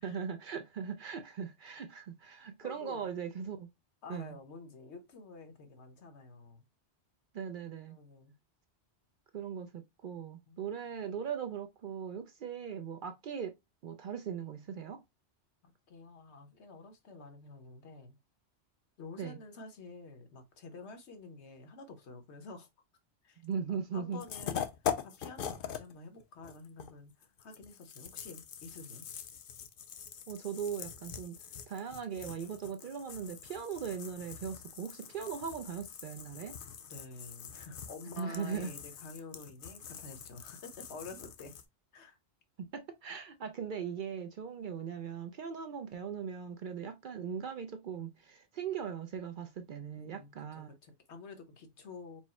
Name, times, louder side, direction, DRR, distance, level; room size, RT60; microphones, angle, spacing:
voice 1, 0.0-3.7 4.1-4.3 7.3-8.0 9.3-13.6 13.8-15.0 19.2-19.4 23.4-24.2 30.3-31.4 31.7-36.6 38.2-38.7 42.6-50.7, right 7 dB, 60° right, 0.6 m, -39 dB
voice 2, 2.6-3.1 4.0-6.6 7.9-8.3 10.5-10.7 15.9-18.1 19.0-22.7 23.2-24.6 25.0-29.0 36.9-41.6 41.9-42.2 49.9-52.2, left 3 dB, 75° left, 1.2 m, -49 dB
sound 1, 24.2-25.9 26.2-41.6, left 8 dB, 60° left, 0.7 m, -43 dB
4.6 x 2.0 x 4.2 m
omnidirectional pair, 1.1 m